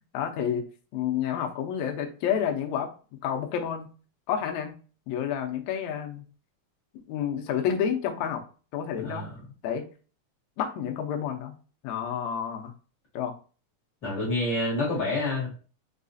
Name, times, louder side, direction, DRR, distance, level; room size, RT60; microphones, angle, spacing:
voice 1, 0.1-0.6 0.9-2.9 3.2-3.9 4.3-4.8 5.1-6.2 7.1-8.4 8.7-9.2 9.6-9.8 10.6-11.5 11.8-12.7 13.1-13.3, left 8 dB, 75° left, 4 dB, 1.8 m, -29 dB
voice 2, 9.0-9.3 14.0-15.5, left 2 dB, 40° left, -5 dB, 2.2 m, -28 dB
5.5 x 3.0 x 2.6 m, 0.37 s
omnidirectional pair, 3.8 m